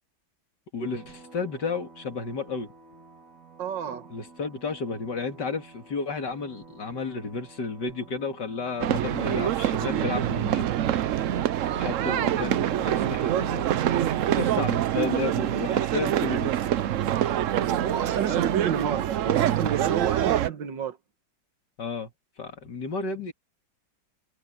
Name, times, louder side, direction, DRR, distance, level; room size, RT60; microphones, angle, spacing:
voice 1, 0.7-2.7 4.1-10.7 11.7-13.7 14.3-16.6 18.2-18.4 21.8-22.1 22.4-23.3, left 4 dB, 60° left, 2.9 m, -32 dB
sound 1, 0.8-20.4, right 3 dB, 40° right, 4.9 m, -49 dB
voice 2, 3.6-4.1 12.0-12.3 15.0-15.1 17.8-21.0, right 8 dB, 70° right, 1.9 m, -31 dB
sound 2, 8.8-20.5, right 11 dB, 85° right, 0.6 m, -25 dB
omnidirectional pair, 2.1 m